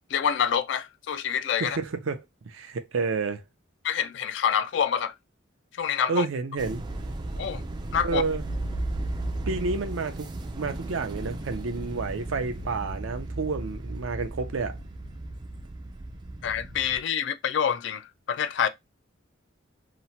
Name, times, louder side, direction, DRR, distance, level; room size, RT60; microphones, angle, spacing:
voice 1, 0.1-1.8 3.8-5.1 5.7-6.3 7.4-7.6 7.9-8.2 16.4-18.7, left 8 dB, 60° left, 0.3 m, -27 dB
voice 2, 1.6-3.4 6.1-6.8 8.0-8.4 9.5-10.3 10.6-14.8, right 4 dB, 80° right, 0.5 m, -30 dB
sound 1, 6.6-17.0, right 1 dB, 20° right, 0.3 m, -35 dB
2.9 x 2.1 x 2.7 m
head